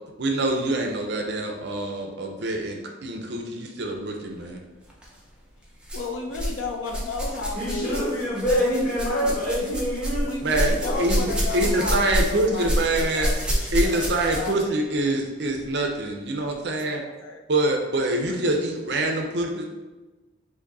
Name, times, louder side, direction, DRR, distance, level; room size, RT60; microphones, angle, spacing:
voice 1, 0.2-4.6 10.4-13.3 13.7-17.0 17.5-19.7, right 2 dB, 60° right, 2 dB, 0.6 m, -25 dB
sound 1, 4.9-5.1 5.8-6.6 6.8-14.6 15.6-15.7 16.5-16.6, equal, 5° right, 0.7 m, -28 dB
voice 2, 5.9-8.0 10.2-14.6 16.4-17.4, left 3 dB, 85° left, 2 dB, 0.5 m, -33 dB
voice 3, 7.5-11.0, equal, 40° left, -8 dB, 1.5 m, -26 dB
5.0 x 2.6 x 4.0 m, 1.2 s
head